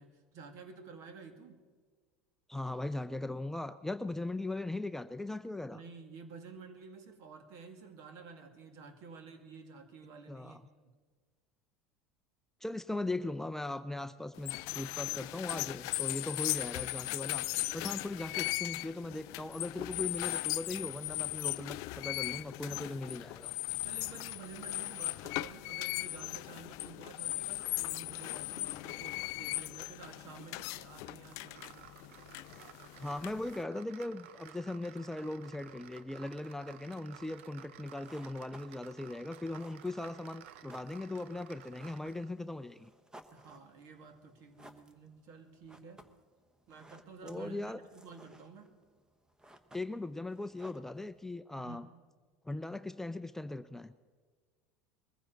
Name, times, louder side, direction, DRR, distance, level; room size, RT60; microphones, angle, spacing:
voice 1, 0.0-1.6 5.7-10.6 10.9-11.0 23.8-31.9 43.3-46.1 46.7-48.7 51.5-51.9, right 5 dB, 55° right, 6 dB, 2.1 m, -51 dB
voice 2, 2.5-5.8 10.3-10.6 12.6-17.5 17.7-23.5 33.0-42.9 47.2-47.8 49.7-51.9 52.4-53.9, left 2 dB, 5° left, 11 dB, 0.5 m, -39 dB
sound 1, 14.4-33.6, left 21 dB, 60° left, 0.3 m, -38 dB
sound 2, 31.2-42.4, right 10 dB, 75° right, 0.7 m, -54 dB
sound 3, 37.8-51.4, equal, 10° right, 1.1 m, -60 dB
22.0 x 15.0 x 3.9 m, 1.5 s
hypercardioid pair, 80°, 7 cm